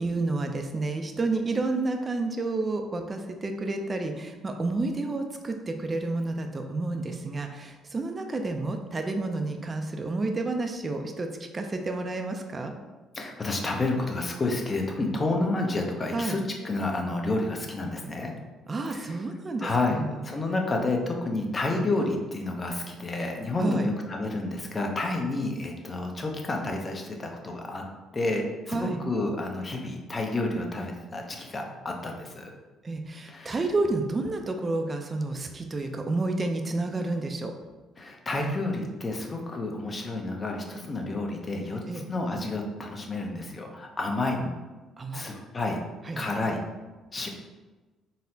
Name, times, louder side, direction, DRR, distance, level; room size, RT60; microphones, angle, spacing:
voice 1, 0.0-11.3 11.5-12.7 16.1-16.4 18.7-20.2 23.6-23.9 28.7-29.0 32.8-37.5 41.9-42.0 45.0-45.3 46.1-46.2, right 2 dB, 30° right, 4 dB, 0.4 m, -30 dB
voice 2, 13.1-18.3 18.9-19.2 19.6-27.8 28.1-32.5 33.2-33.6 38.0-44.5 45.1-45.8 46.2-46.6 47.1-47.3, left 2 dB, 35° left, 2 dB, 0.6 m, -30 dB
4.0 x 2.0 x 2.7 m, 1.2 s
supercardioid pair, 70°, 0 cm